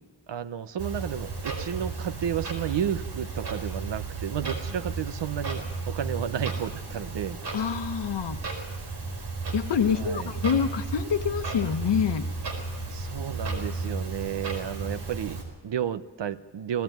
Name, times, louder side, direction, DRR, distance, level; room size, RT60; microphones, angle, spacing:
voice 1, 0.3-7.4 9.9-10.3 12.9-16.8, right 9 dB, 85° right, 12 dB, 0.9 m, -32 dB
Clock, 0.8-15.4, right 3 dB, 70° right, 4.7 m, -34 dB
voice 2, 7.5-8.4 9.5-12.3, left 7 dB, 85° left, 9 dB, 1.1 m, -26 dB
20.0 x 15.0 x 9.2 m, 1.3 s
wide cardioid pair, 175°, 41 cm